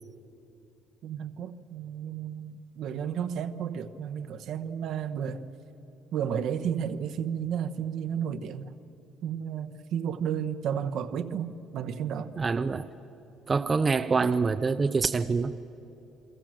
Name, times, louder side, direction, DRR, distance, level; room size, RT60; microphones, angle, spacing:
voice 1, 1.0-5.4 6.1-8.7 9.2-12.3, right 8 dB, 60° right, 1.1 m, -32 dB
voice 2, 12.4-12.9 13.5-15.6, right 4 dB, 25° right, 0.6 m, -25 dB
29.0 x 22.5 x 7.7 m
cardioid pair, 140°, 0 cm